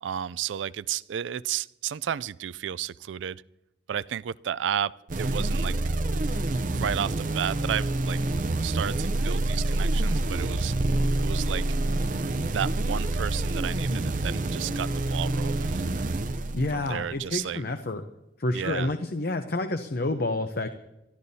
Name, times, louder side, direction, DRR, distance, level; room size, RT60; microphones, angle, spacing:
voice 1, 0.0-3.4 3.9-4.9 5.2-5.8 6.7-8.2 8.6-10.7 11.2-11.6 12.5-16.1 16.7-17.6 18.5-18.9, right 9 dB, 90° right, 19 dB, 0.4 m, -32 dB
sound 1, 5.1-17.0, right 2 dB, 45° right, 0.6 m, -27 dB
voice 2, 16.5-18.0 18.4-20.7, left 2 dB, 55° left, 8 dB, 0.7 m, -29 dB
25.5 x 13.5 x 2.8 m, 0.94 s
head